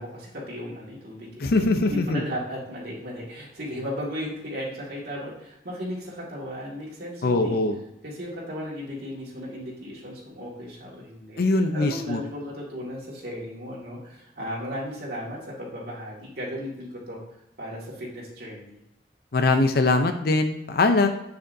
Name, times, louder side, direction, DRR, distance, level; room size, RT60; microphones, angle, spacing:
voice 1, 0.0-1.5 1.8-7.6 8.0-17.2 17.6-18.8, equal, 60° right, -4 dB, 2.0 m, -35 dB
voice 2, 1.4-2.2 7.2-7.8 11.4-12.2 19.3-21.1, left 2 dB, 60° left, 7 dB, 0.6 m, -22 dB
7.7 x 6.9 x 2.6 m, 0.86 s
head